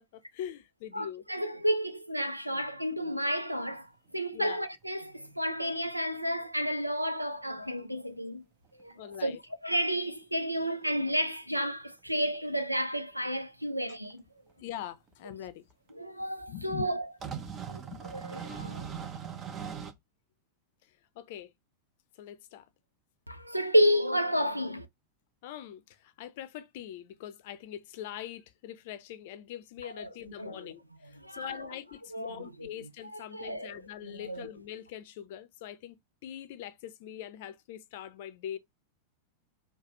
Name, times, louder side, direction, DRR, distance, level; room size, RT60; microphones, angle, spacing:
voice 1, 0.0-1.2 4.3-4.6 9.0-9.4 14.6-15.6 16.5-16.9 17.6-18.0 21.2-21.5 22.2-22.6 25.4-38.6, left 11 dB, 50° left, 0.6 m, -43 dB
voice 2, 0.9-8.4 8.8-8.9 9.2-9.4 9.6-14.2 15.9-17.1 17.7-17.8 18.1-18.9 23.3-24.9 29.8-30.1 30.4-30.7 31.0-31.7 32.1-32.9 33.3-33.8 34.0-34.5, equal, 90° right, 0.5 m, -31 dB
sound 1, 3.7-3.8 4.3-4.4 7.3-7.4 7.6-7.7 8.8-9.2 10.6-10.7 11.0-11.1 12.3-12.4 14.1-14.2 15.1-15.2 15.7-15.9 17.2-19.9, right 7 dB, 25° right, 0.6 m, -40 dB
4.7 x 2.2 x 3.0 m
figure-of-eight pair, 90°, 0 cm